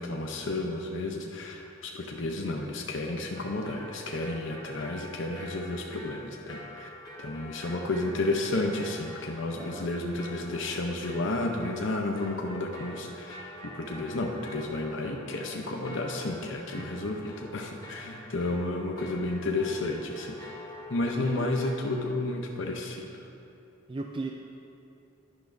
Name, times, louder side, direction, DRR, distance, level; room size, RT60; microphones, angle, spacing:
voice 1, 0.0-6.9 7.2-13.4 13.6-20.4 20.9-23.3, left 2 dB, 70° left, 1 dB, 0.7 m, -32 dB
sound 1, 3.3-22.0, left 1 dB, 20° left, 1.4 m, -46 dB
voice 2, 9.6-9.9 16.6-16.9 21.2-21.5 23.9-24.3, right 3 dB, 25° right, 2 dB, 0.3 m, -37 dB
11.0 x 10.5 x 2.6 m, 2.7 s
head